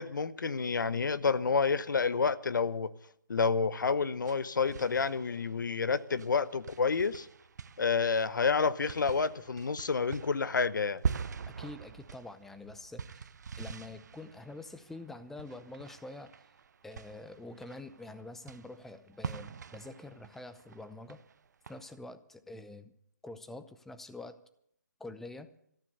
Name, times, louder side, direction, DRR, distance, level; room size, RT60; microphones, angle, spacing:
voice 1, 0.0-2.9 3.3-7.3 7.8-11.0, left 5 dB, 80° left, 0.9 m, -29 dB
sound 1, 3.9-21.9, right 6 dB, 65° right, 0.7 m, -43 dB
voice 2, 11.5-13.3 13.6-16.3 16.8-21.2 21.7-22.9 23.2-24.4 25.0-25.5, left 2 dB, 5° left, 0.7 m, -46 dB
13.5 x 12.0 x 8.0 m
hypercardioid pair, 155°, 10 cm